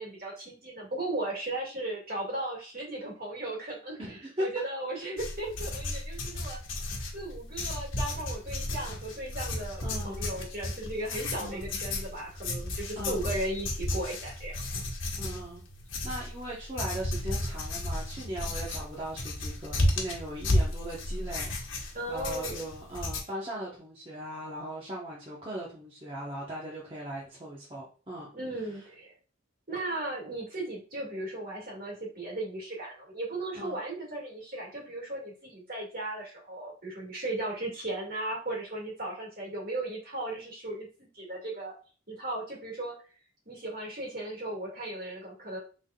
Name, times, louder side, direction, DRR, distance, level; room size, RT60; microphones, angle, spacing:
voice 1, 0.0-6.6 7.1-14.6 21.9-22.6 28.3-29.1 29.7-41.7 42.1-43.0 43.5-45.6, right 1 dB, 45° right, -2 dB, 2.1 m, -36 dB
voice 2, 4.0-4.5 6.3-6.4 8.8-8.9 9.8-10.3 11.4-11.7 13.0-13.2 15.2-15.6 16.0-28.3 33.5-33.8, right 1 dB, 25° right, -6 dB, 1.1 m, -39 dB
sound 1, 5.2-23.2, left 1 dB, 70° left, 1.1 m, -33 dB
6.1 x 3.6 x 2.4 m, 0.37 s
head